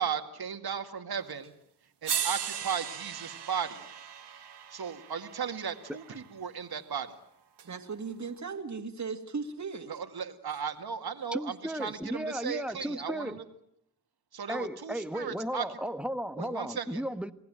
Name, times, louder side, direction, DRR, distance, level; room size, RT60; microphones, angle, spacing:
voice 1, 0.0-1.5 2.0-3.8 4.7-7.1 9.9-13.4 14.3-15.7 16.4-17.0, right 7 dB, 65° right, 2.2 m, -36 dB
sound 1, 1.4-1.5 2.0-6.2 7.6-7.7, right 8 dB, 90° right, 2.0 m, -37 dB
voice 2, 7.6-9.9, right 5 dB, 45° right, 2.3 m, -37 dB
voice 3, 11.3-13.4 14.5-17.3, equal, 5° right, 1.3 m, -35 dB
27.5 x 18.0 x 9.0 m
cardioid pair, 75°, 40 cm